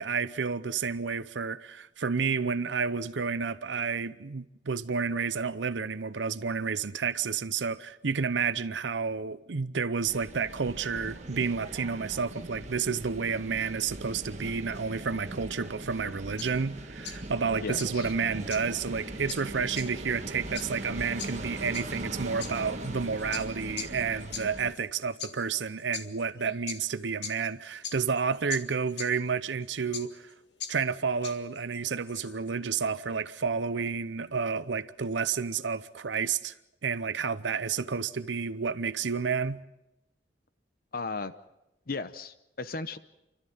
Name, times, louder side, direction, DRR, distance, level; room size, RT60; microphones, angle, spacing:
voice 1, 0.0-30.3 30.7-36.5 36.8-39.6, right 5 dB, 85° right, 0.7 m, -30 dB
sound 1, 10.0-24.7, right 1 dB, 40° right, 1.7 m, -40 dB
sound 2, 16.0-32.5, left 7 dB, 70° left, 2.0 m, -43 dB
voice 2, 17.6-18.1 40.9-41.3 41.9-43.0, left 3 dB, 55° left, 0.8 m, -35 dB
29.5 x 13.0 x 9.3 m
head